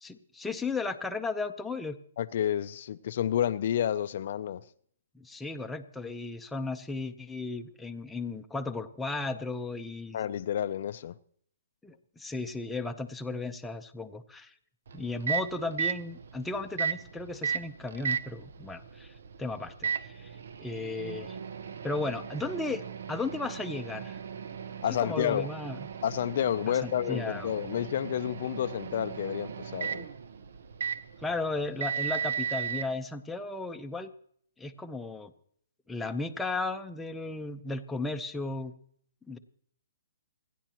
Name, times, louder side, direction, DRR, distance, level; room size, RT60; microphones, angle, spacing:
voice 1, 0.0-2.0 5.1-10.2 11.8-14.5 14.9-20.3 20.6-21.4 21.8-22.8 23.1-24.2 25.0-25.9 26.8-27.5 31.2-34.1 34.6-35.3 35.9-38.7 39.3-39.4, left 3 dB, 5° left, 0.7 m, -35 dB
voice 2, 2.2-4.6 10.1-11.1 24.8-25.5 26.0-30.1, left 10 dB, 55° left, 0.5 m, -30 dB
Microwave oven, 14.9-32.9, right 7 dB, 65° right, 0.8 m, -36 dB
29.0 x 10.0 x 3.0 m
hypercardioid pair, 150°, 0 cm